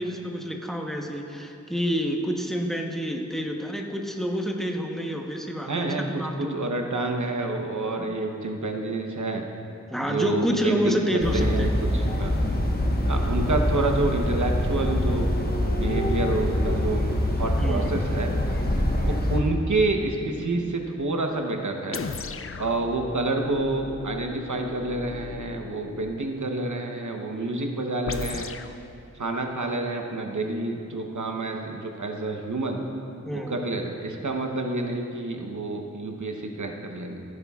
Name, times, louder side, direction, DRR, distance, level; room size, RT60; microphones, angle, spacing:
voice 1, 0.0-6.6 8.0-8.1 9.9-11.8 17.6-17.9 33.3-33.5, equal, ahead, 1 dB, 1.0 m, -28 dB
voice 2, 5.6-9.4 10.0-12.4 13.1-15.3 15.7-17.1 17.4-18.3 19.1-22.0 22.6-28.5 29.1-32.8 33.3-37.2, right 2 dB, 75° right, 3 dB, 1.0 m, -28 dB
sound 1, 11.2-19.4, left 1 dB, 30° left, 1.2 m, -24 dB
sound 2, 21.9-26.2 28.1-28.8, left 5 dB, 45° left, 0.4 m, -37 dB
15.5 x 9.6 x 2.4 m, 2.6 s
wide cardioid pair, 50°, 30 cm